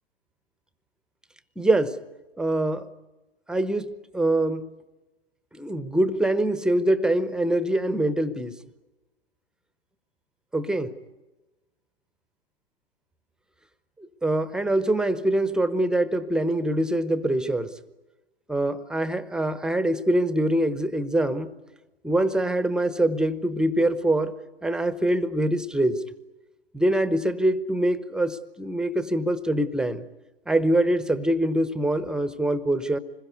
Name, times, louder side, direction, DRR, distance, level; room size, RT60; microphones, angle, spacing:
voice 1, 1.6-2.0 2.4-2.9 3.5-4.7 5.5-8.6 10.5-10.9 14.2-17.7 18.5-21.5 22.0-24.3 24.6-26.0 26.7-30.0 30.5-33.0, right 1 dB, ahead, 14 dB, 0.8 m, -24 dB
26.0 x 21.5 x 9.6 m, 1.1 s
figure-of-eight pair, 115°, 32 cm